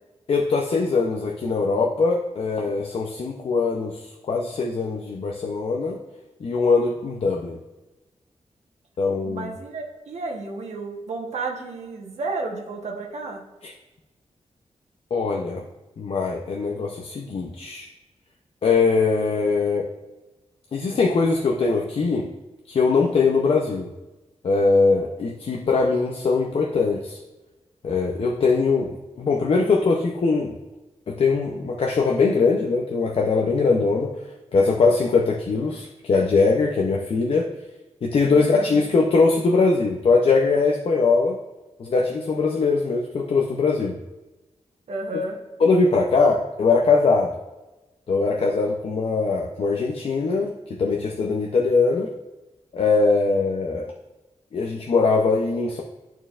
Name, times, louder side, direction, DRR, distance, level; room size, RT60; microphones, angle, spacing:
voice 1, 0.3-6.0 6.4-7.6 9.0-9.5 13.6-13.7 15.1-15.6 16.0-17.9 18.6-19.9 20.7-22.3 22.7-23.9 24.4-27.2 27.8-30.5 31.1-34.2 34.5-37.5 38.0-41.4 41.8-44.0 45.6-47.3 48.1-50.5 50.8-52.1 52.7-53.9 54.5-55.8, left 4 dB, 55° left, 0 dB, 0.6 m, -21 dB
voice 2, 9.2-13.4 38.3-38.9 44.9-45.4, right 3 dB, 80° right, 1 dB, 1.1 m, -32 dB
11.0 x 4.5 x 2.5 m, 1.1 s
wide cardioid pair, 145°, 11 cm